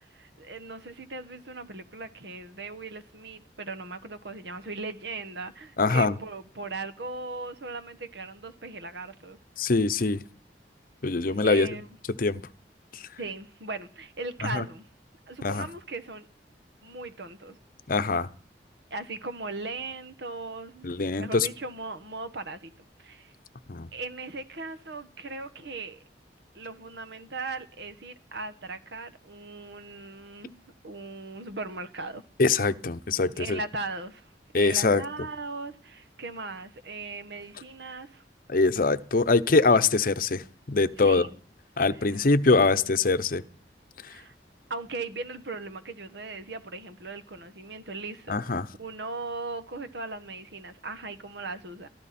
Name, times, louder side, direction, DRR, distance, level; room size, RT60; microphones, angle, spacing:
voice 1, 0.1-9.4 11.2-11.9 13.2-14.9 15.3-16.3 16.8-17.6 18.9-22.7 23.0-23.3 23.9-26.0 26.5-32.2 33.4-38.2 41.0-41.4 42.0-42.2 44.1-44.3 44.7-51.9, right 3 dB, 75° right, 1.4 m, -38 dB
voice 2, 5.8-6.2 9.6-10.2 11.0-11.7 12.2-12.4 12.9-13.0 14.4-14.6 15.4-15.7 17.9-18.3 20.8-21.5 23.7-23.9 32.4-33.6 34.5-35.0 38.5-41.3 41.8-43.4 48.3-48.7, left 3 dB, 55° left, 0.8 m, -23 dB
23.5 x 14.5 x 4.3 m
head